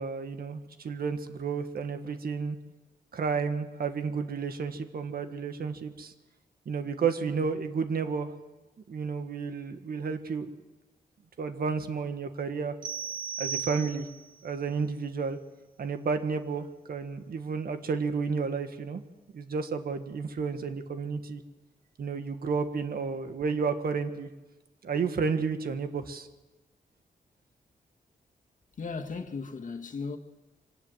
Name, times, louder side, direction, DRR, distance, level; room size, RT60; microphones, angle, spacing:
voice 1, 0.0-2.6 3.1-6.1 6.7-8.3 8.9-10.5 11.4-12.7 13.4-14.1 14.4-15.4 15.8-19.0 19.3-21.4 22.0-24.3 24.8-26.3, right 5 dB, 65° right, 1.7 m, -31 dB
sound 1, 12.8-14.3, right 7 dB, 30° right, 2.0 m, -36 dB
voice 2, 28.8-30.2, left 4 dB, 50° left, 1.8 m, -36 dB
25.0 x 18.5 x 8.1 m
wide cardioid pair, 135°, 17 cm